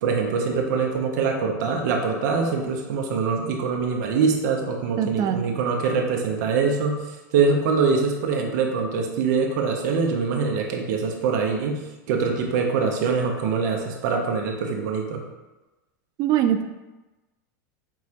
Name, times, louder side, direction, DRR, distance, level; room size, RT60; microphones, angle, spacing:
voice 1, 0.0-11.8 12.1-15.2, right 5 dB, 70° right, 1 dB, 0.7 m, -24 dB
voice 2, 5.0-5.5 16.2-16.6, right 10 dB, 40° right, 8 dB, 0.4 m, -22 dB
4.6 x 3.0 x 2.8 m, 1.1 s
supercardioid pair, 120°, 10 cm